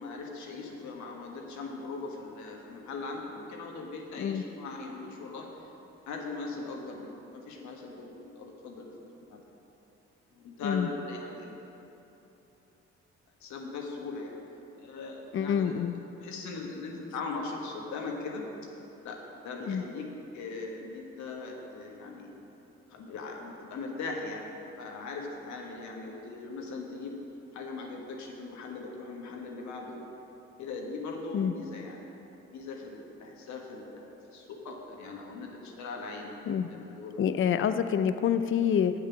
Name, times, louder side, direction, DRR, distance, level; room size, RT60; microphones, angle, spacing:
voice 1, 0.0-5.5 6.1-8.9 9.3-9.4 10.3-11.6 13.4-14.4 14.8-15.8 16.2-18.4 19.0-19.2 19.4-20.1 20.3-22.3 22.9-27.2 27.5-30.0 30.6-32.2 32.5-36.3 36.7-37.2, left 3 dB, 75° left, 1 dB, 1.4 m, -40 dB
voice 2, 15.3-15.9 19.7-19.8 31.3-31.5 36.5-36.7 37.2-38.9, left 8 dB, 45° left, 10 dB, 0.5 m, -27 dB
8.1 x 7.4 x 6.0 m, 3.0 s
supercardioid pair, 55°, 29 cm